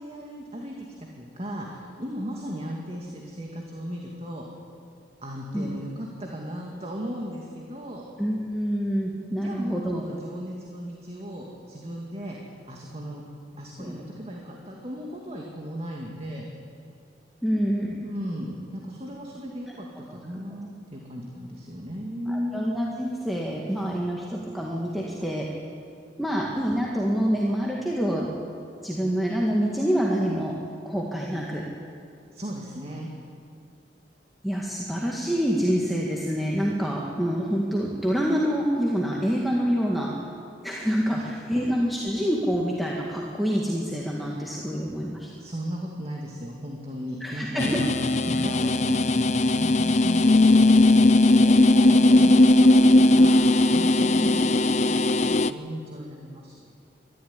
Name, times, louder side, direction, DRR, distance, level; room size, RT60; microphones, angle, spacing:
voice 1, 0.0-4.5 5.2-8.1 9.4-12.4 12.7-13.2 13.6-16.5 18.0-22.6 32.3-33.1 41.2-41.3 44.1-44.4 45.4-47.9 48.2-51.1 51.4-56.7, equal, 35° right, -1 dB, 2.2 m, -36 dB
voice 2, 8.2-10.0 13.8-13.9 17.4-18.0 22.3-25.5 26.2-28.3 28.8-30.5 30.9-31.7 34.4-40.1 40.6-45.3 47.2-47.8 54.2-54.3, equal, ahead, -4 dB, 1.9 m, -26 dB
sound 1, 47.6-55.5, left 2 dB, 40° left, 0.6 m, -18 dB
24.5 x 13.5 x 9.8 m, 2.4 s
head